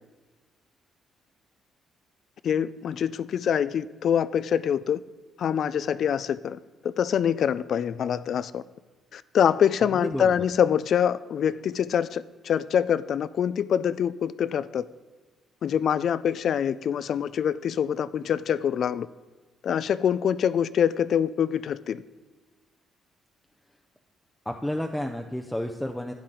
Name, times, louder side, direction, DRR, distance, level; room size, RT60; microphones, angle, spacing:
voice 1, 2.4-5.0 5.4-8.6 9.1-14.8 15.6-19.1 19.6-22.0, left 8 dB, 65° left, 16 dB, 0.3 m, -25 dB
voice 2, 10.0-10.3 24.5-26.1, left 1 dB, 5° left, 3 dB, 0.6 m, -31 dB
11.5 x 8.7 x 3.8 m, 1.3 s
cardioid pair, 90°, 0 cm